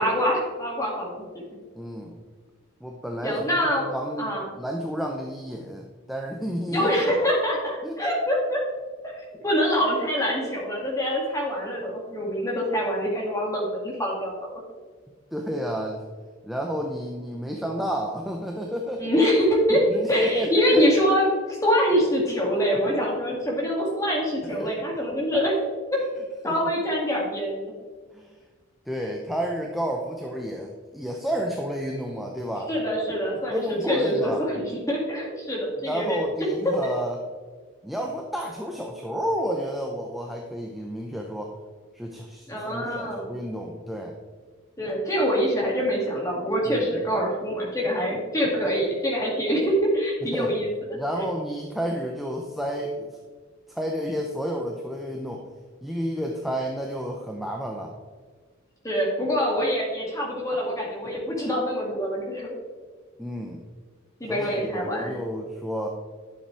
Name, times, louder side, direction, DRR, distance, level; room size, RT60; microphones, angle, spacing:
voice 1, 0.0-1.4 3.2-4.5 6.7-8.6 9.0-14.3 19.0-19.8 20.1-25.5 26.4-27.7 32.7-36.5 36.8-36.9 42.5-43.3 44.8-50.7 51.2-51.3 58.8-62.6 64.2-65.2, equal, 15° left, -3 dB, 2.4 m, -25 dB
voice 2, 1.8-2.2 2.8-7.0 7.8-7.9 15.3-16.0 16.4-19.1 19.7-20.8 24.6-24.7 26.4-26.6 28.1-28.3 28.9-32.7 33.5-34.4 35.8-37.2 37.8-41.6 41.9-44.1 46.6-46.9 50.2-50.5 50.9-53.2 53.7-55.4 55.8-57.9 63.2-63.6 64.3-65.9, equal, ahead, 0 dB, 0.7 m, -31 dB
11.5 x 7.1 x 3.5 m, 1.5 s
head